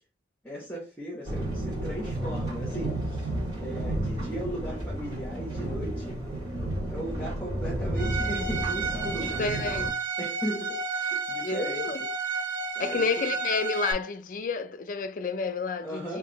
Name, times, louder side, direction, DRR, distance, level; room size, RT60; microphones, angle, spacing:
voice 1, 0.4-3.3 3.6-6.2 6.9-9.7 10.2-12.1 12.7-13.3 15.8-16.2, equal, 10° left, 0.7 m, -37 dB
sound 1, 1.2-9.9, right 1 dB, 25° right, 1.5 m, -32 dB
Bowed string instrument, 8.0-13.9, right 4 dB, 45° right, 0.6 m, -32 dB
voice 2, 9.2-9.9 11.4-12.0 12.8-16.2, left 4 dB, 45° left, 0.3 m, -30 dB
2.8 x 2.5 x 3.9 m
head